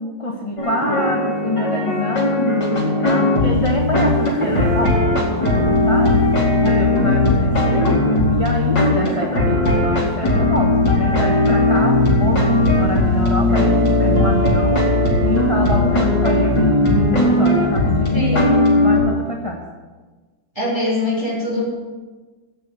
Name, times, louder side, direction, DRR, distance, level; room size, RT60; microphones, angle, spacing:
voice 1, 0.0-6.3 6.6-7.9 8.3-14.9 15.2-19.6, equal, 20° left, 0 dB, 1.3 m, -25 dB
sound 1, 0.6-19.0, left 2 dB, 75° left, 3.4 m, -17 dB
voice 2, 18.1-18.5 20.5-21.6, equal, 15° right, -10 dB, 3.8 m, -22 dB
16.5 x 6.4 x 8.4 m, 1.3 s
omnidirectional pair, 2.0 m